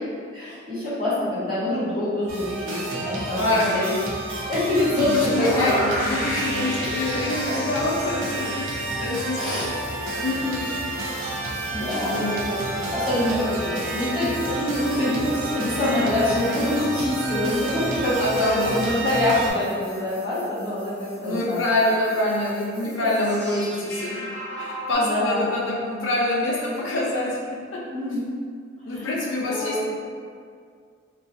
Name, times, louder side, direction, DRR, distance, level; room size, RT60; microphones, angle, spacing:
voice 1, 0.3-3.9 4.5-5.7 6.7-6.8 9.3-9.6 11.4-12.6 12.9-18.3 18.6-21.6 22.8-23.1 24.9-25.4 27.9-28.3 28.9-29.8, left 1 dB, 25° right, -15 dB, 1.1 m, -25 dB
sound 1, 2.3-19.5, right 2 dB, 80° right, 0.5 m, -30 dB
voice 2, 3.4-3.7 4.9-8.7 9.0-9.8 10.2-10.6 11.8-12.5 18.2-18.8 21.2-24.3 24.6-27.4 27.7-27.8 28.9-29.9, left 1 dB, 70° left, -4 dB, 0.6 m, -25 dB
sound 2, 5.3-24.9, equal, 10° left, 0.4 m, -38 dB
2.3 x 2.3 x 2.6 m, 2.1 s
head